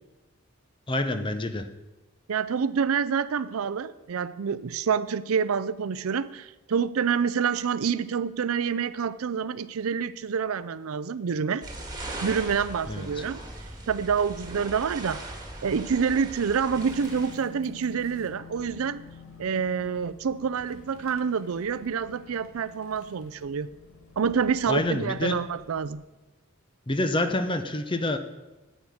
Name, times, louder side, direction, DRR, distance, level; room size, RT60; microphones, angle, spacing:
voice 1, 0.9-1.7 12.9-13.2 24.7-25.4 26.9-28.2, left 2 dB, 25° left, 8 dB, 0.8 m, -27 dB
voice 2, 2.3-11.7 12.2-15.2 15.6-19.0 19.4-23.7 24.2-26.0, right 6 dB, 80° right, 16 dB, 0.5 m, -27 dB
sound 1, 11.6-17.3, right 1 dB, 20° right, 2.0 m, -39 dB
sound 2, 16.7-25.9, left 4 dB, 85° left, 1.8 m, -49 dB
10.5 x 8.3 x 6.3 m, 1.1 s
head